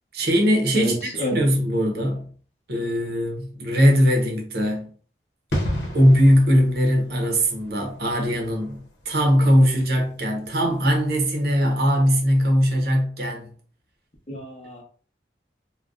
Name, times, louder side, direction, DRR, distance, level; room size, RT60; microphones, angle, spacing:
voice 1, 0.1-2.3 2.7-4.9 5.9-13.5, equal, 60° right, 0.7 m, -20 dB
voice 2, 0.7-1.4 14.3-14.8, equal, 35° left, 0.7 m, -29 dB
sound 1, 5.5-12.0 12.3-12.4, equal, 80° left, 0.8 m, -34 dB
2.5 x 2.2 x 3.5 m
head